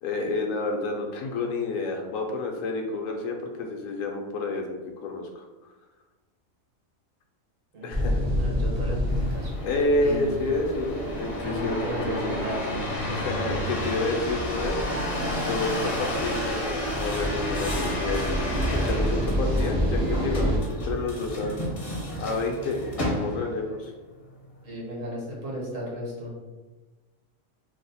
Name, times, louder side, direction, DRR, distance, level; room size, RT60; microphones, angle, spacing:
voice 1, 0.0-5.4 7.8-8.3 9.6-12.4 13.1-14.9 15.5-18.2 18.7-21.6 22.2-23.9, left 2 dB, 75° left, 2 dB, 0.9 m, -29 dB
voice 2, 7.7-9.5 10.0-10.3 11.3-13.5 24.6-26.3, equal, 70° right, -3 dB, 1.4 m, -35 dB
sound 1, 7.9-20.6, equal, 35° right, 0.4 m, -29 dB
sound 2, 9.1-23.6 24.2-24.7, equal, 40° left, 0.5 m, -31 dB
3.0 x 2.0 x 4.0 m, 1.2 s
omnidirectional pair, 1.4 m